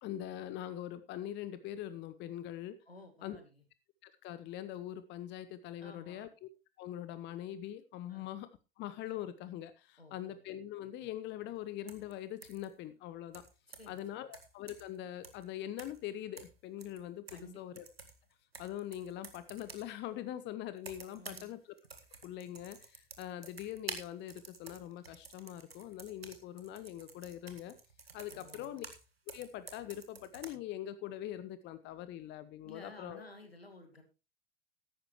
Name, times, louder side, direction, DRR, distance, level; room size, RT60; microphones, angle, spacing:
voice 1, 0.0-2.8 3.2-3.4 4.0-6.5 6.8-8.5 8.8-13.4 13.9-17.8 18.6-21.7 22.2-27.7 28.1-28.8 29.3-33.2, left 12 dB, 40° left, 14 dB, 0.9 m, -43 dB
voice 2, 2.9-3.6 5.8-6.3 8.1-8.3 10.0-10.5 13.7-14.3 17.3-17.6 21.1-21.5 28.3-28.8 32.6-34.0, left 2 dB, 85° left, 7 dB, 2.3 m, -54 dB
sound 1, 11.9-12.1 12.4-12.7 13.3-14.0 14.3-15.0 15.2-15.4 15.8-16.1 16.4-17.5 17.8-19.9 20.8-21.5 21.8-29.0 29.3-30.5, right 4 dB, 85° right, 1.6 m, -50 dB
14.0 x 11.0 x 3.1 m, 0.30 s
figure-of-eight pair, 75°, 29 cm